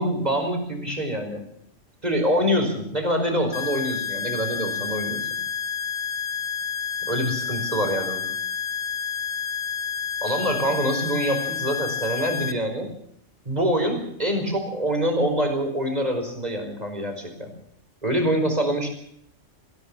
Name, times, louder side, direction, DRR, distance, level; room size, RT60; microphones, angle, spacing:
voice 1, 0.0-1.4 2.0-5.3 7.1-8.2 10.2-12.9 13.4-17.5 18.0-18.9, equal, 30° right, 4 dB, 5.2 m, -25 dB
sound 1, 3.5-12.5, left 7 dB, 50° left, 1.2 m, -29 dB
22.0 x 16.5 x 7.3 m, 0.69 s
omnidirectional pair, 1.3 m